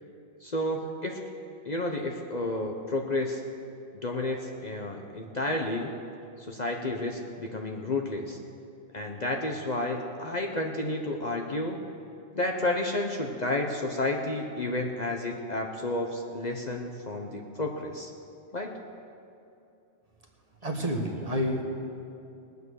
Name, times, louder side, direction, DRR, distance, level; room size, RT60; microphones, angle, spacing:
voice 1, 0.4-1.2 1.6-3.4 4.0-6.0 6.4-8.4 8.9-11.8 12.3-18.1 18.5-18.7, left 2 dB, 40° left, 1 dB, 1.0 m, -31 dB
voice 2, 20.6-21.6, equal, 30° right, 0 dB, 1.5 m, -29 dB
21.0 x 8.2 x 6.4 m, 2.7 s
omnidirectional pair, 1.2 m